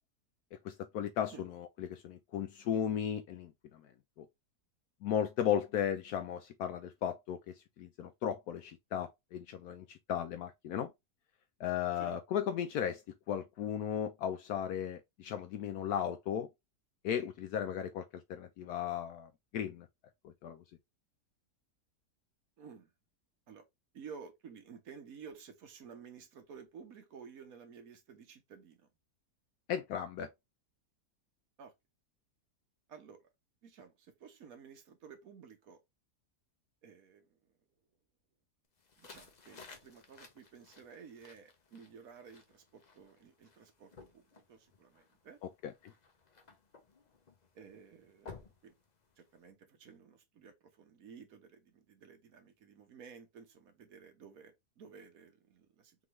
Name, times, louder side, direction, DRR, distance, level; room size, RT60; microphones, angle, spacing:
voice 1, 0.5-3.5 4.2-4.3 5.0-10.9 11.6-13.0 13.3-16.5 17.0-19.9 20.2-20.6 29.7-30.3 45.6-45.7, left 9 dB, 75° left, 1.1 m, -36 dB
voice 2, 22.6-22.9 23.5-23.7 23.9-28.8 31.6-31.7 32.9-33.2 33.6-35.8 36.8-37.4 39.0-45.4 47.5-48.7 49.2-56.0, right 6 dB, 60° right, 1.5 m, -53 dB
sound 1, 38.8-49.5, left 5 dB, 40° left, 0.6 m, -57 dB
3.8 x 3.7 x 3.0 m
omnidirectional pair, 1.7 m